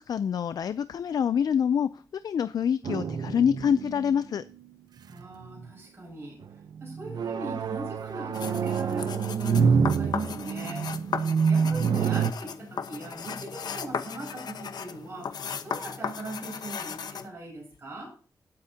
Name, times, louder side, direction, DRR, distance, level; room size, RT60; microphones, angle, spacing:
voice 1, 0.0-4.4, left 8 dB, 70° left, 0.4 m, -26 dB
sound 1, 2.8-4.6 5.2-5.6 6.4-12.3, right 6 dB, 85° right, 0.7 m, -27 dB
voice 2, 5.1-6.4 6.8-11.0 11.4-18.1, right 2 dB, 35° right, 6.4 m, -40 dB
sound 2, 8.3-17.3, left 6 dB, 85° left, 1.0 m, -36 dB
19.5 x 8.6 x 2.8 m
wide cardioid pair, 170°, 7 cm